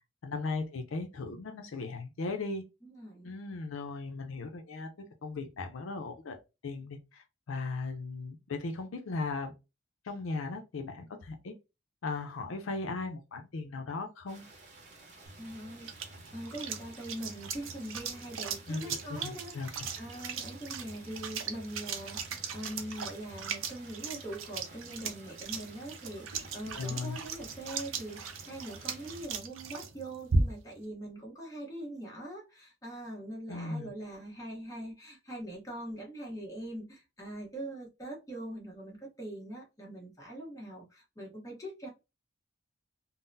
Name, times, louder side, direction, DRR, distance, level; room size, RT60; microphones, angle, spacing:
voice 1, 0.2-2.6 3.2-4.9 5.2-6.4 6.6-9.5 10.0-11.5 12.0-14.4 18.7-19.7 26.7-27.2 33.5-33.9, left 3 dB, 85° left, 0.5 m, -37 dB
voice 2, 2.8-3.3 15.4-41.9, right 1 dB, 15° left, 0.9 m, -42 dB
sound 1, 14.3-29.3, right 3 dB, 35° right, 0.8 m, -54 dB
sound 2, 15.3-30.8, right 4 dB, 85° right, 0.5 m, -38 dB
3.7 x 2.0 x 2.6 m
head